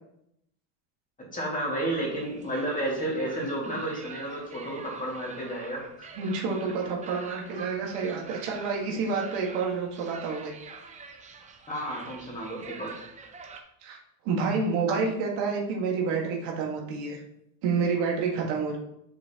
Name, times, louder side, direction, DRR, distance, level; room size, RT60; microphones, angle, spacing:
voice 1, 1.2-6.1 11.7-13.0, right 1 dB, 15° left, -3 dB, 2.2 m, -32 dB
sound 1, 1.9-13.6, right 4 dB, 15° right, 0.4 m, -46 dB
voice 2, 6.2-10.5 13.8-14.0 14.2-17.2 17.6-18.8, right 4 dB, 80° right, 0 dB, 1.9 m, -28 dB
7.7 x 6.1 x 2.9 m, 0.78 s
cardioid pair, 150°, 48 cm